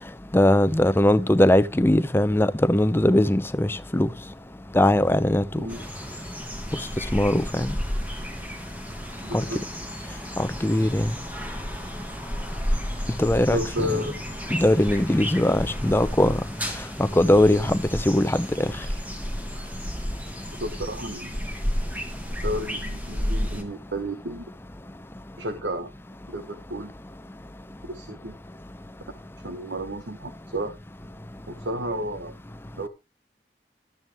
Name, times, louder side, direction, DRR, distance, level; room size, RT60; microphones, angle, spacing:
voice 1, 0.3-4.1 4.7-5.4 7.1-7.7 9.3-9.4 10.4-11.1 13.2-14.0 14.5-16.4 17.0-18.7, left 1 dB, 15° left, 0.6 m, -20 dB
sound 1, 5.7-23.6, equal, 10° right, 1.9 m, -32 dB
voice 2, 9.2-9.6 13.5-14.1 20.5-21.4 22.4-24.4 25.4-25.9 26.3-26.9 27.9-28.3 29.4-30.7 31.5-32.3 32.8-32.9, equal, 85° right, 1.3 m, -32 dB
12.5 x 9.2 x 3.5 m
head